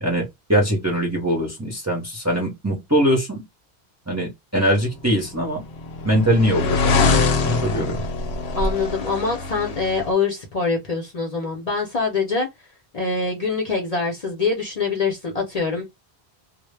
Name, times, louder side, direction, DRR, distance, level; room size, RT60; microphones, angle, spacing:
voice 1, 0.0-3.4 4.1-5.6 6.0-8.0, equal, 20° right, 0.6 m, -22 dB
sound 1, 5.2-10.1, left 3 dB, 90° left, 0.9 m, -23 dB
voice 2, 8.5-12.5 12.9-15.8, left 4 dB, 45° left, 0.6 m, -24 dB
2.1 x 2.0 x 3.1 m
omnidirectional pair, 1.1 m